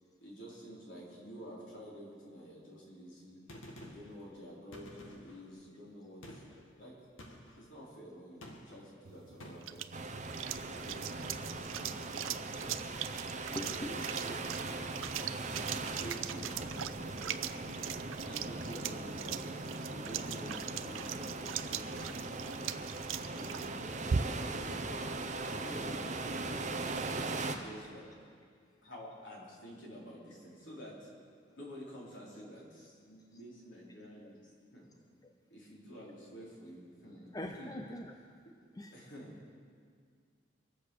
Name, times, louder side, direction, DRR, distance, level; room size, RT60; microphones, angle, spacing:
voice 1, 0.2-3.4 3.8-6.4 6.8-7.0 7.6-10.0 10.6-12.8 13.5-14.6 15.4-17.6 18.2-19.4 19.8-22.7 23.3-24.8 25.4-26.9 27.3-28.1 28.8-31.1 31.5-34.4 34.7-34.9 35.5-37.8 38.9-39.5, equal, 65° left, -5 dB, 4.7 m, -50 dB
Gunshot gunfire, 3.5-4.2 4.7-5.4 6.2-6.6 7.2-7.6 8.4-8.9 9.4-9.8, equal, 85° left, 2.0 m, -51 dB
sound 1, 9.0-24.6, right 8 dB, 85° right, 0.6 m, -41 dB
sound 2, 9.9-27.6, right 3 dB, 40° right, 1.0 m, -40 dB
voice 2, 13.5-13.9 14.9-15.5 35.2-35.3 37.3-38.1 38.7-39.0, left 1 dB, 20° left, 3 dB, 0.6 m, -43 dB
24.0 x 8.1 x 6.6 m, 2.1 s
head